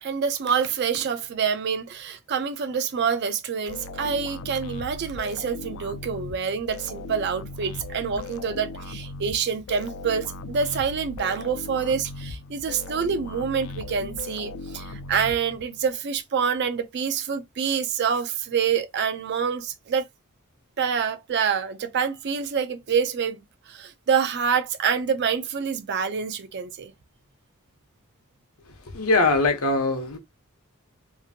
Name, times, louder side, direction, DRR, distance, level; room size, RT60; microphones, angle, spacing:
voice 1, 0.0-20.0 20.8-23.4 23.7-26.9, right 6 dB, 50° right, 0.4 m, -26 dB
sound 1, 3.7-15.9, left 2 dB, 65° left, 0.3 m, -38 dB
voice 2, 28.9-30.2, left 3 dB, 80° left, 0.9 m, -21 dB
2.9 x 2.5 x 2.7 m
head